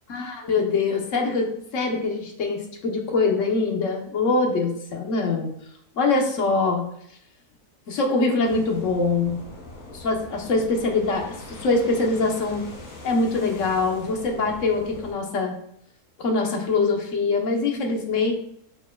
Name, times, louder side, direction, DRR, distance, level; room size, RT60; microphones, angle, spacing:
voice 1, 0.1-5.5 6.0-6.8 7.9-9.4 9.9-12.6 13.0-15.6 16.2-18.3, left 3 dB, 55° left, 1 dB, 1.5 m, -23 dB
sound 1, 8.4-15.1, left 2 dB, 75° left, 2.3 m, -42 dB
11.5 x 4.9 x 2.4 m, 0.70 s
omnidirectional pair, 1.6 m